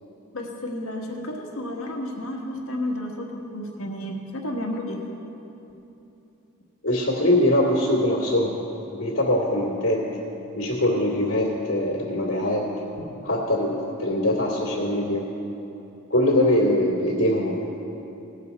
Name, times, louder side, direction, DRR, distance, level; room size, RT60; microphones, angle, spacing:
voice 1, 0.3-5.0, left 1 dB, 85° left, 1 dB, 1.4 m, -31 dB
voice 2, 6.8-8.6 8.9-10.0 10.5-12.6 13.2-15.2 16.1-17.8, left 1 dB, 65° left, -6 dB, 2.4 m, -22 dB
18.0 x 7.3 x 4.2 m, 2.9 s
head